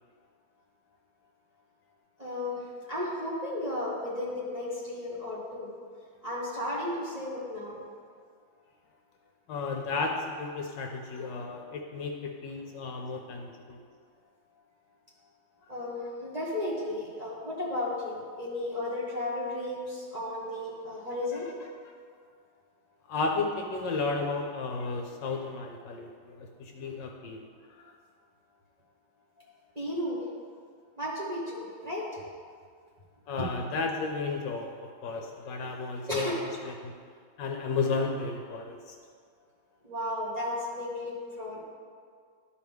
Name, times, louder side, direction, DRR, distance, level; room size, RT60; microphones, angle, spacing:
voice 1, 2.2-5.7 6.2-7.8 15.7-21.6 29.7-30.2 31.0-32.2 33.4-33.5 36.1-36.3 39.8-41.6, left 1 dB, 25° right, -7 dB, 1.1 m, -34 dB
voice 2, 9.5-13.8 23.1-27.5 27.8-27.9 33.3-36.4 36.6-36.9 37.4-38.9, left 3 dB, 70° left, 2 dB, 1.2 m, -33 dB
12.0 x 4.7 x 3.5 m, 2.1 s
omnidirectional pair, 2.2 m